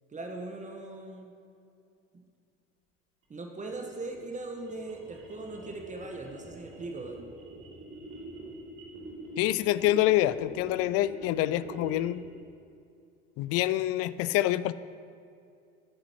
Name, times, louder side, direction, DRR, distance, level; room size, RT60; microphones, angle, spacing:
voice 1, 0.1-1.3 3.3-7.2, right 2 dB, 20° right, 2 dB, 1.3 m, -39 dB
sound 1, 3.6-12.3, right 1 dB, 40° right, 3.1 m, -45 dB
voice 2, 9.4-12.2 13.4-14.7, left 14 dB, 45° left, 16 dB, 0.4 m, -26 dB
20.5 x 9.5 x 3.1 m, 2.4 s
figure-of-eight pair, 60°, 34 cm